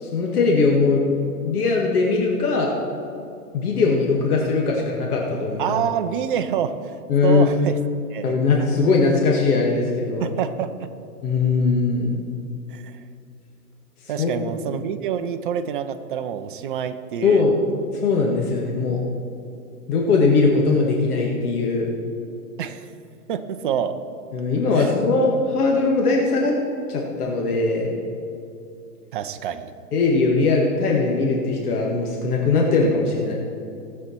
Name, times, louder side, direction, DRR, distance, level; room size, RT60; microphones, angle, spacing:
voice 1, 0.0-1.0 1.4-2.7 3.5-5.8 7.1-7.5 8.2-10.3 11.2-12.2 14.2-14.3 17.2-17.6 18.0-19.0 19.9-21.9 24.3-26.5 26.9-27.9 29.9-33.3, left 3 dB, 65° left, -1 dB, 1.9 m, -20 dB
voice 2, 5.6-7.0 7.2-7.8 8.1-8.3 10.2-10.9 12.7-13.0 14.1-17.4 22.6-22.9 23.3-24.0 24.7-24.9 29.1-29.7, right 8 dB, 35° right, 9 dB, 0.5 m, -27 dB
18.0 x 7.5 x 4.4 m, 2.6 s
hypercardioid pair, 140°, 49 cm